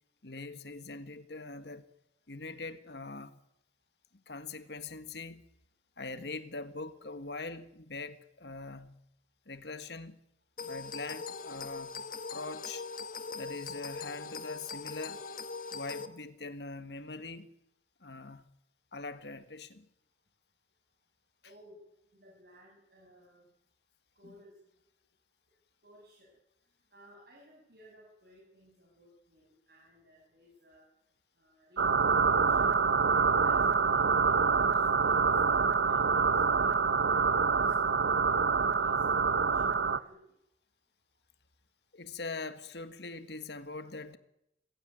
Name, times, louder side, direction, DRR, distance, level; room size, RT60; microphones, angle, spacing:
voice 1, 0.2-1.9 2.3-3.3 4.3-5.5 6.0-9.0 9.5-10.2 10.6-11.9 12.3-12.9 13.3-15.2 15.7-17.5 18.0-18.4 18.9-19.9 24.2-24.3 41.9-44.2, left 3 dB, 70° left, 1.6 m, -42 dB
sound 1, 10.6-16.1, left 4 dB, 50° left, 1.4 m, -41 dB
voice 2, 21.4-21.8 22.1-23.4 24.2-24.5 25.8-26.3 26.9-30.8 31.4-31.8 32.1-32.8 33.1-35.6 35.9-38.4 38.7-40.2, equal, 60° right, 7.9 m, -58 dB
sound 2, 31.8-40.0, right 5 dB, 80° right, 0.9 m, -26 dB
26.0 x 16.5 x 9.4 m
head